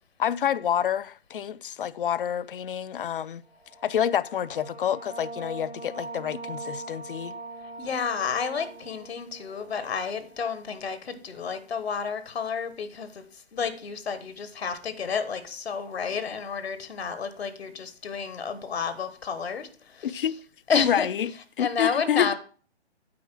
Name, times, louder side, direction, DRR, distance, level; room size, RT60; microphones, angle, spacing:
voice 1, 0.2-3.4 3.8-7.4 20.0-20.4 20.7-21.3 21.6-22.3, left 9 dB, 55° left, 0.5 m, -28 dB
sound 1, 3.5-10.8, right 2 dB, 90° right, 2.8 m, -42 dB
voice 2, 7.8-20.4 20.7-22.3, left 6 dB, 70° left, 1.2 m, -31 dB
8.5 x 4.3 x 6.0 m
figure-of-eight pair, 145°, 33 cm